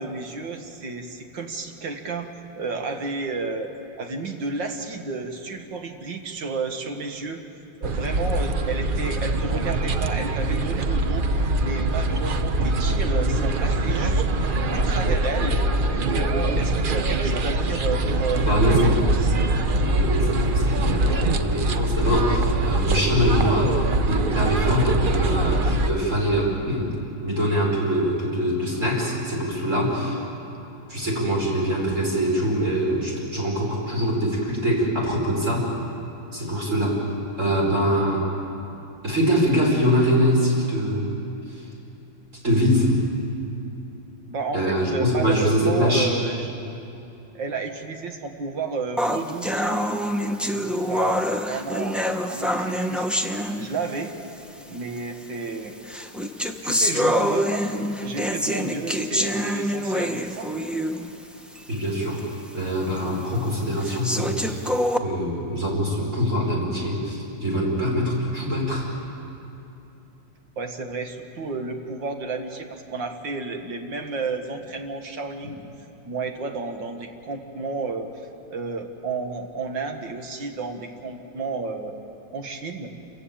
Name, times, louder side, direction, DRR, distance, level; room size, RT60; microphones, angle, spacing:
voice 1, 0.0-2.3 2.6-3.7 4.0-7.4 7.8-11.3 11.6-19.4 44.3-46.5 47.3-49.8 50.4-53.1 53.6-54.1 54.7-55.7 56.6-57.7 58.0-60.5 70.6-75.6 76.0-81.9 82.3-82.9, right 4 dB, 75° right, 5 dB, 2.2 m, -32 dB
sound 1, 7.8-25.9, right 2 dB, 55° right, 0.5 m, -23 dB
voice 2, 18.4-19.0 19.8-23.8 24.0-26.9 27.2-30.2 30.9-35.7 36.3-37.0 37.4-38.3 39.0-41.1 42.4-43.0 44.5-46.1 61.7-62.3 62.5-64.6 65.0-68.9, equal, 40° right, -3 dB, 5.4 m, -23 dB
sound 2, 49.0-54.1 55.0-55.1 55.9-61.1 61.5-61.6 62.2-62.3 63.0-63.1 63.8-65.0, equal, ahead, 0.4 m, -26 dB
27.5 x 15.5 x 8.7 m, 2.8 s
omnidirectional pair, 2.0 m